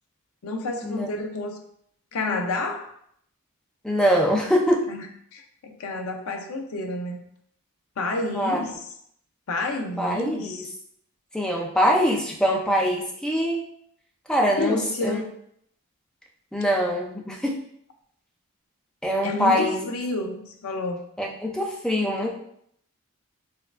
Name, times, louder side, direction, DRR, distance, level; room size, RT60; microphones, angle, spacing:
voice 1, 0.4-1.6 2.1-2.9 4.9-5.0 5.3-7.2 8.0-8.8 9.5-10.7 14.6-15.3 19.2-21.0, left 2 dB, 75° left, 4 dB, 0.5 m, -29 dB
voice 2, 3.8-4.8 8.3-8.6 10.0-10.7 11.3-13.6 14.3-15.2 16.5-17.6 19.0-19.8 21.2-22.3, equal, 5° left, -1 dB, 0.4 m, -23 dB
4.3 x 2.3 x 2.4 m, 0.70 s
head